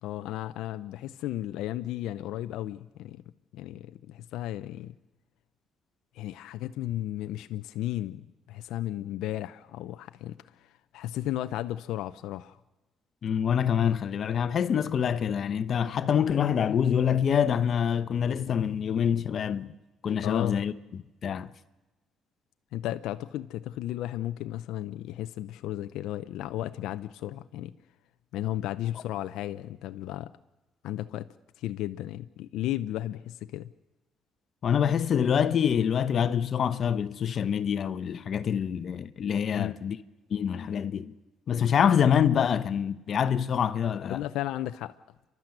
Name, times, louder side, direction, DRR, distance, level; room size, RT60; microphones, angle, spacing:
voice 1, 0.0-3.2 3.5-4.9 6.1-8.2 8.5-12.6 20.2-20.6 22.7-27.7 28.3-30.3 30.8-31.3 31.6-33.7 39.5-39.7 44.1-45.0, left 13 dB, 80° left, 0.6 m, -34 dB
voice 2, 13.2-19.7 20.0-21.5 34.6-40.0 40.3-41.1 41.5-44.2, left 8 dB, 55° left, 1.0 m, -26 dB
30.0 x 12.0 x 7.9 m
supercardioid pair, 80°, 0 cm